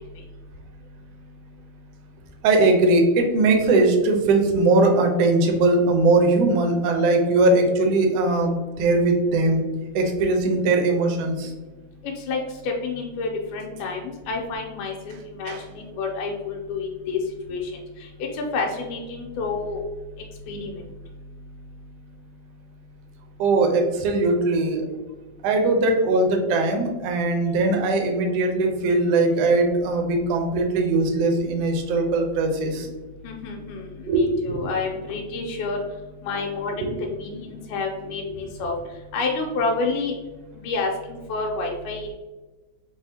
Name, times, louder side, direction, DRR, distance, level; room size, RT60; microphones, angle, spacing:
voice 1, 2.4-9.6 9.9-11.5 15.5-15.6 23.4-24.8 25.4-32.9 34.1-34.6 36.8-36.9, right 2 dB, 75° right, 3 dB, 1.5 m, -20 dB
voice 2, 12.0-17.2 17.5-17.7 18.0-19.8 20.5-20.8 33.2-35.8 36.2-38.7 39.1-40.1 40.6-42.1, left 3 dB, 90° left, 0 dB, 2.2 m, -29 dB
5.6 x 3.0 x 2.7 m, 1.2 s
omnidirectional pair, 3.5 m